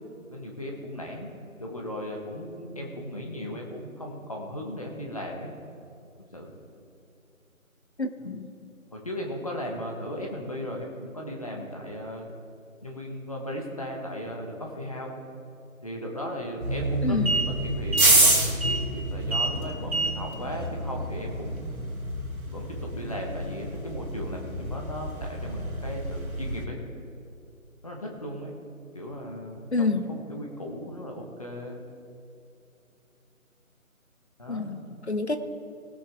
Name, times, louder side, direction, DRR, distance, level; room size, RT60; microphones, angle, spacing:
voice 1, 0.3-1.3 1.6-5.5 6.3-6.6 8.9-12.3 12.8-15.2 15.8-21.8 22.5-26.8 27.8-28.5 28.9-31.8 34.4-34.7, equal, 25° left, 0 dB, 1.4 m, -36 dB
voice 2, 8.0-8.5 17.0-17.3 29.7-30.1 34.5-35.4, left 3 dB, 50° left, 8 dB, 0.8 m, -28 dB
sound 1, 16.6-26.6, right 2 dB, 80° right, 2.6 m, -27 dB
20.5 x 8.3 x 3.6 m, 2.5 s
figure-of-eight pair, 170°, 42 cm